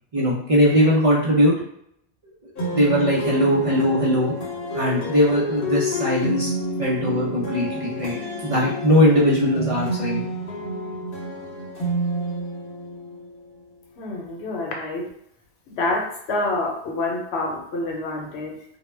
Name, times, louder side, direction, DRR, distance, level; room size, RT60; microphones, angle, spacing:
voice 1, 0.1-1.5 2.7-4.3 4.7-6.5 6.8-8.1 8.4-10.3, equal, 45° right, -6 dB, 0.5 m, -20 dB
sound 1, 2.6-13.7, equal, 65° left, 0.9 m, -29 dB
voice 2, 14.0-15.1 15.7-18.6, left 2 dB, 90° left, 0 dB, 0.9 m, -27 dB
2.2 x 2.1 x 3.1 m, 0.72 s
omnidirectional pair, 1.1 m